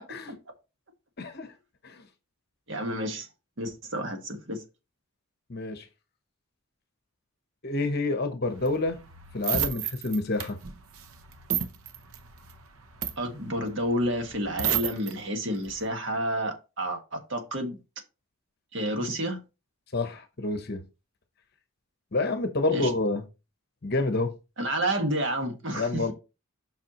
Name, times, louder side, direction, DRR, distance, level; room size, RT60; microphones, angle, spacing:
voice 1, 1.2-1.5 1.8-2.0 5.5-5.9 7.6-9.0 9.3-10.6 19.9-20.8 22.1-23.2 23.8-24.3 25.8-26.1, left 2 dB, 45° left, 0.9 m, -28 dB
voice 2, 2.7-3.3 3.6-4.6 13.2-17.8 18.7-19.4 22.7-22.9 24.6-26.1, right 1 dB, 55° right, 1.6 m, -30 dB
sound 1, 8.5-15.1 15.5-15.9, right 9 dB, 75° right, 0.8 m, -32 dB
7.4 x 5.8 x 3.0 m
head